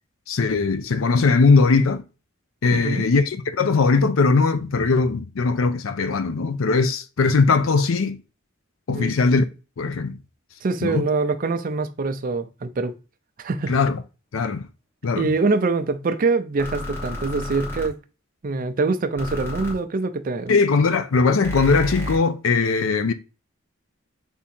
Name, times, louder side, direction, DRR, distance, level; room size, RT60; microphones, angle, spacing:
voice 1, 0.3-2.0 2.6-8.2 8.9-9.4 9.8-10.2 10.8-11.1 13.7-14.0 14.3-14.7 15.0-15.3 20.5-23.1, left 4 dB, 85° left, 0.5 m, -20 dB
voice 2, 2.7-3.0 8.9-9.1 10.6-12.9 13.4-13.8 15.1-18.0 18.4-20.5, right 3 dB, 45° right, 0.5 m, -24 dB
sound 1, 16.6-17.9 19.2-19.7 21.4-22.2, equal, 10° left, 1.0 m, -31 dB
3.6 x 2.8 x 4.3 m
head